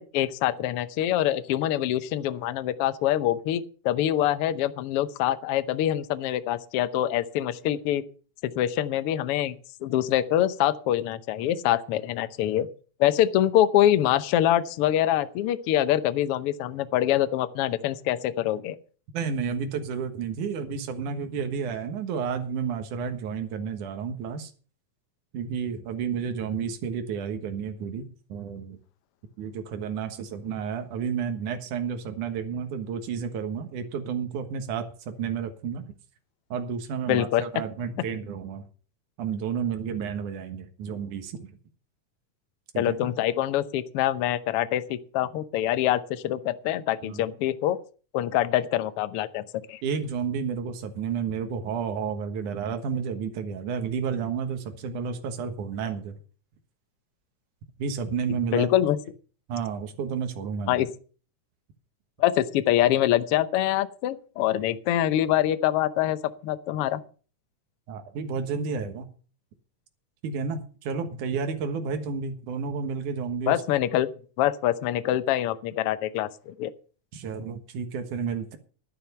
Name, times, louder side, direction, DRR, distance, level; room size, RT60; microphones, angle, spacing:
voice 1, 0.0-8.0 8.4-9.5 9.8-12.7 13.0-18.8 37.1-37.4 42.8-47.8 48.1-49.8 58.5-59.0 60.7-60.9 62.2-67.0 73.5-74.1 74.4-76.7, left 12 dB, 70° left, 13 dB, 1.4 m, -25 dB
voice 2, 19.1-24.5 25.3-28.8 29.4-35.9 36.5-38.6 39.2-41.5 42.7-43.1 47.0-47.2 49.8-56.1 57.8-58.7 59.5-60.8 67.9-69.1 70.2-73.6 77.1-78.6, right 6 dB, 80° right, 6 dB, 2.9 m, -31 dB
11.5 x 10.5 x 5.5 m, 0.39 s
omnidirectional pair, 3.5 m